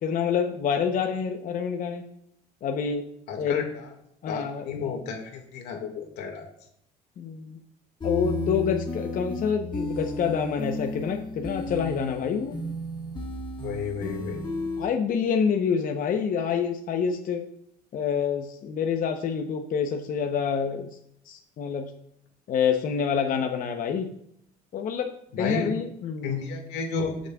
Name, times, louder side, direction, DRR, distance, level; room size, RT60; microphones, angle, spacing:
voice 1, 0.0-2.0 2.6-3.1 3.4-3.6 4.2-4.6 7.2-7.6 8.0-12.6 14.8-17.4 17.9-21.0 21.3-21.9 22.5-24.1 24.7-25.1 25.4-26.4, left 7 dB, 55° left, 4 dB, 0.8 m, -27 dB
voice 2, 3.3-3.9 4.3-6.5 13.6-14.4 25.3-25.7 26.2-27.1, left 5 dB, 90° left, 4 dB, 1.9 m, -32 dB
sound 1, 8.0-14.9, left 1 dB, 25° left, 1.6 m, -33 dB
18.0 x 6.4 x 2.4 m, 0.72 s
cardioid pair, 110°, 17 cm